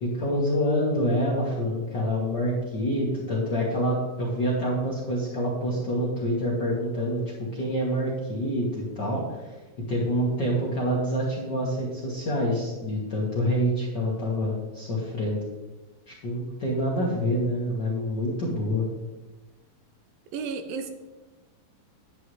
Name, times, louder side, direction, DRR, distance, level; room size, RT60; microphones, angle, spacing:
voice 1, 0.0-9.5 9.9-15.4 16.1-18.8, equal, 50° left, -4 dB, 1.3 m, -27 dB
voice 2, 20.3-20.9, right 5 dB, 85° right, 7 dB, 2.6 m, -32 dB
9.6 x 9.4 x 3.2 m, 1.2 s
omnidirectional pair, 4.0 m